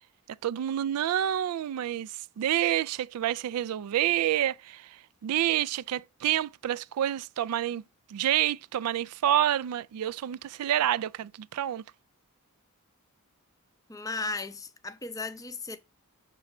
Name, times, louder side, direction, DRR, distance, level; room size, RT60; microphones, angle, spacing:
voice 1, 0.4-2.1 2.4-4.8 5.2-7.8 8.1-11.8, right 11 dB, 85° right, 0.3 m, -28 dB
voice 2, 13.9-15.8, left 3 dB, 15° left, 0.5 m, -35 dB
7.6 x 3.2 x 5.8 m
head